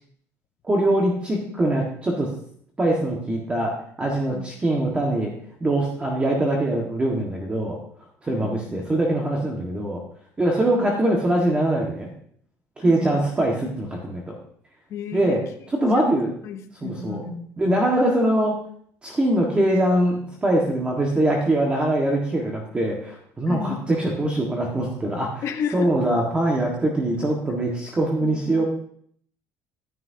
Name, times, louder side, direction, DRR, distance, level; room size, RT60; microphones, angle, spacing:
voice 1, 0.6-2.3 2.8-5.3 5.6-7.8 8.2-10.0 10.4-12.1 12.8-14.4 15.1-15.4 15.7-16.3 16.8-17.2 17.6-18.6 19.0-25.4 25.7-28.6, right 1 dB, 20° right, -1 dB, 1.6 m, -23 dB
voice 2, 8.3-8.6 10.6-10.9 12.8-13.2 14.9-15.4 15.8-16.2 16.4-17.9 23.5-23.8 25.4-26.2 28.2-28.6, left 7 dB, 55° left, 4 dB, 0.9 m, -33 dB
12.0 x 10.0 x 2.8 m, 0.63 s
cardioid pair, 120°, 6 cm